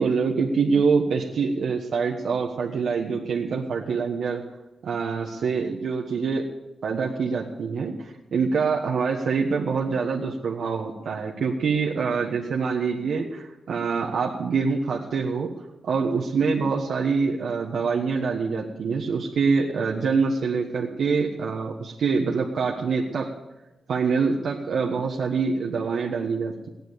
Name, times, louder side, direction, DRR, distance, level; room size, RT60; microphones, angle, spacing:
voice 1, 0.0-4.4 4.8-6.4 6.8-15.5 15.8-23.3 23.9-26.7, right 5 dB, 75° right, -1 dB, 1.5 m, -25 dB
17.0 x 10.5 x 6.9 m, 1.0 s
wide cardioid pair, 170°, 0 cm